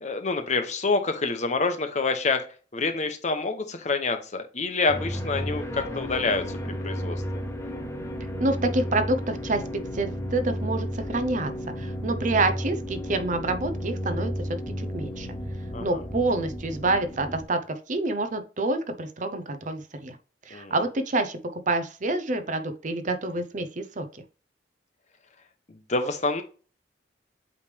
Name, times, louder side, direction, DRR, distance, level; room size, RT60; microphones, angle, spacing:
voice 1, 0.0-2.4 2.7-7.2 15.7-16.0 20.5-20.7 25.9-26.4, left 3 dB, 40° left, 7 dB, 0.9 m, -27 dB
sound 1, 4.9-17.4, equal, 15° left, 0.9 m, -33 dB
voice 2, 8.4-9.6 9.9-11.5 11.8-14.3 14.8-15.3 15.8-17.6 17.9-20.2 20.5-24.2, right 2 dB, 45° right, 8 dB, 0.7 m, -27 dB
8.4 x 3.3 x 3.4 m, 0.37 s
head